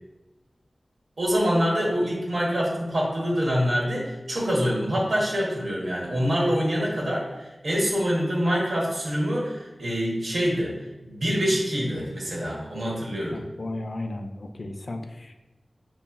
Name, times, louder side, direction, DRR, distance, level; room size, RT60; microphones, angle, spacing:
voice 1, 1.2-10.7 11.1-13.4, equal, 80° right, -3 dB, 1.1 m, -25 dB
voice 2, 13.3-15.3, left 2 dB, 60° left, 5 dB, 0.4 m, -34 dB
5.5 x 3.0 x 2.3 m, 1.1 s
wide cardioid pair, 50°, 0 cm